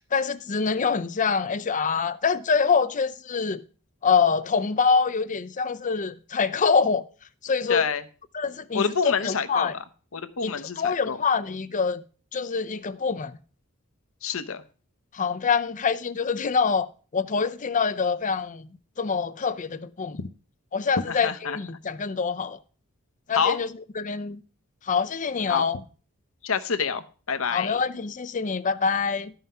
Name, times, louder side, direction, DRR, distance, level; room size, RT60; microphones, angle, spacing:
voice 1, 0.1-3.6 4.0-7.0 7.4-7.9 8.3-9.7 10.4-12.0 12.3-13.4 15.1-16.9 17.1-18.7 19.0-20.2 20.7-22.6 23.3-23.7 24.0-24.4 24.9-25.8 27.5-29.3, left 5 dB, 35° left, 0.6 m, -25 dB
voice 2, 7.7-8.0 8.7-9.8 10.1-11.2 14.2-14.6 21.1-21.6 23.3-23.6 25.5-25.7 26.4-27.8, left 6 dB, 70° left, 0.8 m, -27 dB
12.5 x 5.7 x 5.6 m
head